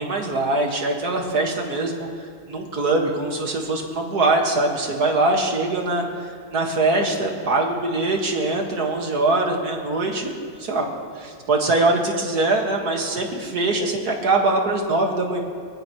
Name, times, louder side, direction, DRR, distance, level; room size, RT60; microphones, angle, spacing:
voice 1, 0.0-2.1 2.5-6.1 6.5-10.9 11.2-15.4, right 2 dB, 50° right, 1 dB, 2.2 m, -22 dB
23.0 x 19.0 x 3.1 m, 2.2 s
omnidirectional pair, 2.2 m